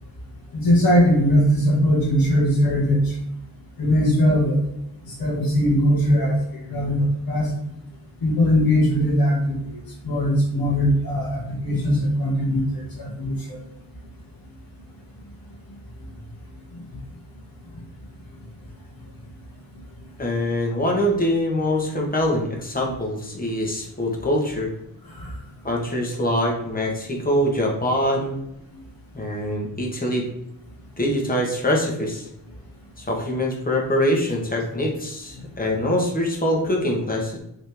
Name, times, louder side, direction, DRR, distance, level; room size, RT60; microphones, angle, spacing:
voice 1, 0.5-3.2 3.8-4.6 5.0-6.4 6.7-7.5 8.2-9.6 10.0-13.3 25.2-25.3, equal, 70° left, -4 dB, 2.0 m, -20 dB
voice 2, 20.2-24.7 25.6-28.4 29.1-30.3 31.0-32.3 33.0-37.4, left 1 dB, 25° left, -1 dB, 1.5 m, -24 dB
6.4 x 4.1 x 3.5 m, 0.81 s
wide cardioid pair, 130°, 37 cm